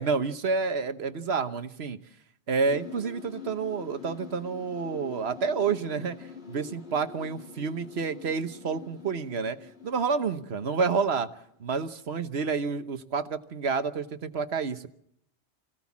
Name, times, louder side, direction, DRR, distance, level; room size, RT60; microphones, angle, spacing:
voice 1, 0.0-2.0 2.5-9.6 9.8-11.3 11.6-14.9, right 5 dB, 65° right, 10 dB, 1.3 m, -29 dB
sound 1, 2.6-11.5, left 6 dB, 65° left, 2.7 m, -45 dB
25.0 x 16.5 x 7.3 m, 0.73 s
omnidirectional pair, 1.2 m